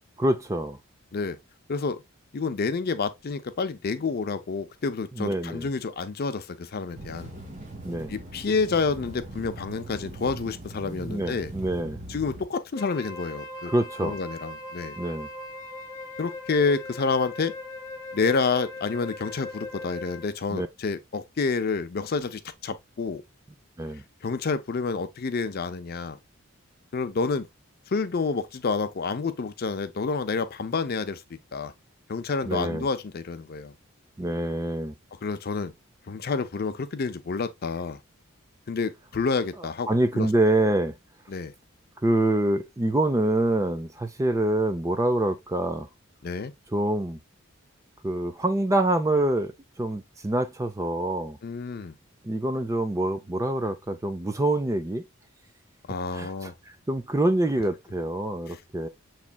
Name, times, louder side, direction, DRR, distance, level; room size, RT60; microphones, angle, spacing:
voice 1, 0.2-0.8 5.2-5.7 7.8-8.1 10.8-12.0 13.7-14.2 15.0-15.3 20.5-20.7 23.8-24.0 32.5-32.9 34.2-34.9 39.9-40.9 42.0-45.9 46.7-47.2 48.0-49.5 49.8-51.4 52.2-55.0 56.1-56.5 56.9-58.9, right 1 dB, 15° right, 0.4 m, -25 dB
voice 2, 1.7-2.0 2.3-7.3 8.1-11.5 12.1-13.7 14.0-15.0 16.2-17.5 18.1-23.2 24.2-26.2 26.9-27.5 27.9-31.2 31.5-31.7 32.1-33.7 35.2-35.7 36.1-38.0 38.7-40.3 41.3-41.5 46.2-46.5 51.4-51.9 55.9-56.5, left 4 dB, 45° left, 0.5 m, -29 dB
sound 1, 6.9-12.4, right 1 dB, 35° right, 1.4 m, -41 dB
Wind instrument woodwind instrument, 12.7-20.4, left 2 dB, 15° left, 1.0 m, -40 dB
7.1 x 3.1 x 2.2 m
head